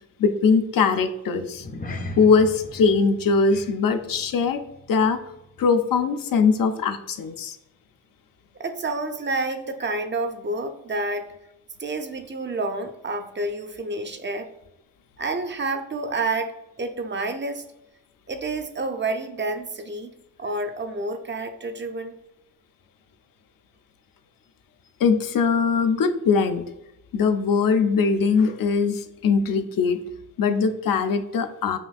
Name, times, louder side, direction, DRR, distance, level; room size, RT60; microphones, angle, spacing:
voice 1, 0.2-1.7 2.2-4.6 4.9-5.2 5.6-7.6 25.0-26.6 27.1-30.0 30.4-31.8, left 5 dB, 80° left, 8 dB, 0.5 m, -21 dB
sound 1, 1.5-6.1 6.4-6.7 7.2-7.3, left 1 dB, 25° left, 0.4 m, -39 dB
voice 2, 8.6-11.3 11.8-14.5 15.2-17.6 18.3-20.1 20.4-22.2, right 2 dB, 35° right, 7 dB, 0.5 m, -29 dB
5.9 x 2.6 x 2.3 m, 0.88 s
wide cardioid pair, 105°, 33 cm